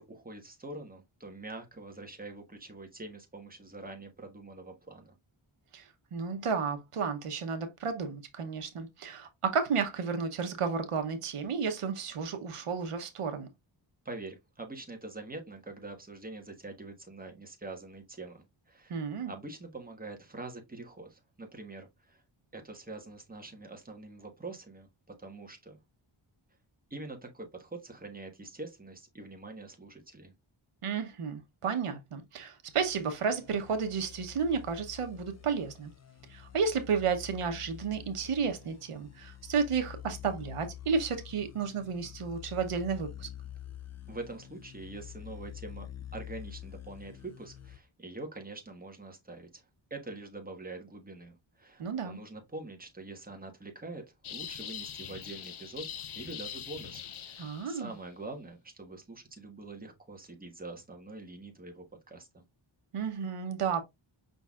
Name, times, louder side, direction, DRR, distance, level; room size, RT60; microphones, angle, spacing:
voice 1, 0.0-5.1 14.0-22.2 22.5-24.9 25.2-25.8 26.9-30.3 44.1-45.9 46.1-49.6 49.9-62.4, right 2 dB, 15° right, 1.3 m, -45 dB
voice 2, 5.7-13.5 18.9-19.3 30.8-35.9 36.3-43.3 51.8-52.2 57.4-57.9 62.9-63.8, right 5 dB, 90° right, 0.9 m, -32 dB
sound 1, 32.7-47.8, left 11 dB, 35° left, 0.5 m, -47 dB
sound 2, 54.2-57.9, left 9 dB, 70° left, 0.7 m, -42 dB
5.6 x 4.0 x 2.4 m
wide cardioid pair, 90°, 50 cm